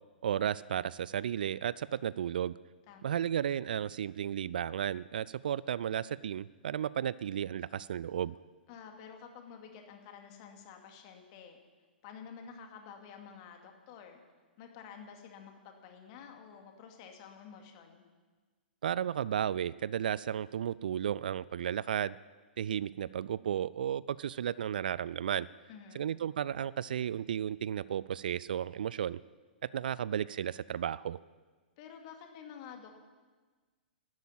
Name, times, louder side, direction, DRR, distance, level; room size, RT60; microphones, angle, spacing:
voice 1, 0.2-2.5 3.0-8.3 18.8-22.2 22.6-25.5 25.9-29.2 29.6-31.2, right 9 dB, 55° right, 20 dB, 0.4 m, -33 dB
voice 2, 2.9-3.2 8.7-11.6 12.0-14.2 14.6-18.0 25.7-26.1 31.8-33.1, left 7 dB, 40° left, 4 dB, 2.4 m, -50 dB
12.5 x 11.5 x 8.6 m, 1.4 s
figure-of-eight pair, 110°, 6 cm